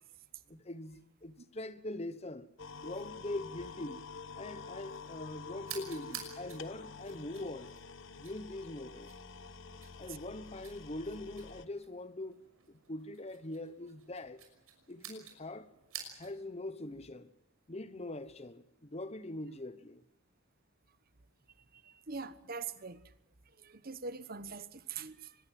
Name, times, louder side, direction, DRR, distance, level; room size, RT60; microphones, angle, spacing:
voice 1, 0.5-2.5 2.7-4.0 4.4-7.7 8.2-9.1 10.0-14.4 14.9-15.7 16.2-17.3 17.7-20.0, left 1 dB, 30° left, 1.0 m, -43 dB
sound 1, 2.6-11.7, left 4 dB, 60° left, 1.1 m, -48 dB
sound 2, 5.6-16.5, right 8 dB, 85° right, 6.0 m, -51 dB
voice 2, 21.8-23.0 23.6-25.4, right 5 dB, 45° right, 1.1 m, -43 dB
24.0 x 21.0 x 7.6 m
head